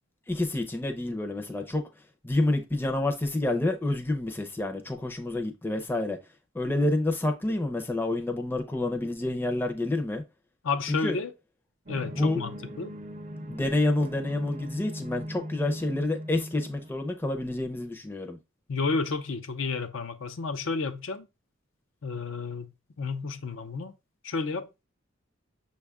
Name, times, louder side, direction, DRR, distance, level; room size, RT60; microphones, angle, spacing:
voice 1, 0.3-1.8 2.2-6.2 6.5-10.2 10.9-11.2 12.2-12.4 13.5-18.4, left 2 dB, 10° left, 0.5 m, -28 dB
voice 2, 10.6-11.3 11.9-12.5 12.8-12.9 18.7-21.2 22.0-22.7 23.0-24.0 24.2-24.8, left 4 dB, 75° left, 0.5 m, -31 dB
sound 1, 11.9-16.9, equal, 40° right, 0.5 m, -39 dB
6.1 x 2.3 x 3.4 m
head